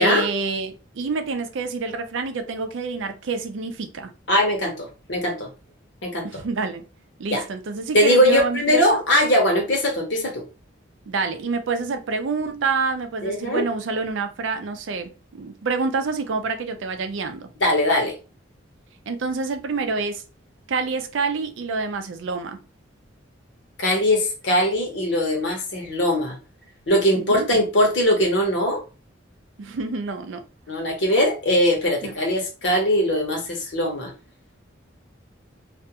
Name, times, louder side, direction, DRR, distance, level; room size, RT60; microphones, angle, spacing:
voice 1, 0.0-4.1 6.2-6.8 7.2-9.0 11.1-17.5 19.1-20.2 20.7-22.6 27.2-27.5 29.6-30.4 32.0-32.1, right 4 dB, 80° right, 0.4 m, -27 dB
voice 2, 4.3-5.5 6.0-6.2 7.3-7.4 7.9-10.4 13.2-13.7 17.6-18.1 23.8-26.3 26.9-28.8 30.7-34.1, left 1 dB, 65° left, 0.9 m, -21 dB
2.5 x 2.2 x 2.8 m
head